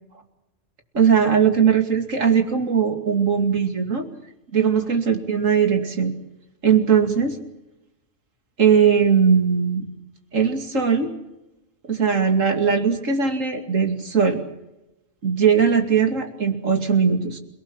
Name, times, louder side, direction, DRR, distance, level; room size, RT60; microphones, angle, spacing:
voice 1, 0.9-4.1 4.5-6.1 6.6-7.4 8.6-9.9 10.3-11.1 11.9-14.4 15.2-17.4, right 6 dB, 85° right, 6 dB, 2.9 m, -19 dB
29.0 x 17.5 x 7.3 m, 0.92 s
omnidirectional pair, 1.3 m